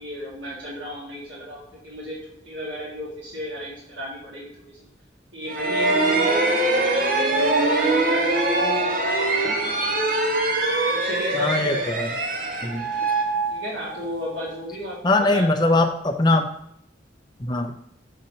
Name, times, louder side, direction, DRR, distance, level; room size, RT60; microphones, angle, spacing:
voice 1, 0.0-2.2 2.4-4.9 5.3-10.0 10.9-11.9 12.2-12.3 13.5-15.0 15.3-15.7, equal, 75° right, -5 dB, 1.7 m, -35 dB
sound 1, 5.5-14.2, right 2 dB, 50° right, 0.8 m, -23 dB
voice 2, 11.3-12.1 12.6-12.9 15.0-16.5 17.4-17.7, left 2 dB, 25° left, 4 dB, 0.6 m, -21 dB
6.6 x 2.9 x 5.3 m, 0.69 s
head